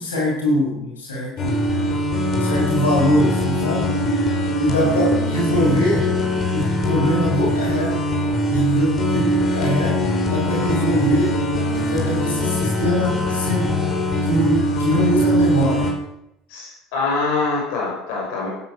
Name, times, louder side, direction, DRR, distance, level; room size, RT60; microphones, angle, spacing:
voice 1, 0.0-1.9 2.3-3.9 4.6-6.1 6.5-8.0 8.5-11.4 11.7-13.7 14.2-15.9, equal, 85° left, -2 dB, 6.8 m, -22 dB
sound 1, 1.4-15.9, equal, 45° left, 5.4 m, -21 dB
voice 2, 16.5-18.5, left 3 dB, 65° left, -2 dB, 5.8 m, -24 dB
17.5 x 11.5 x 6.5 m, 0.84 s
hypercardioid pair, 65°, 0 cm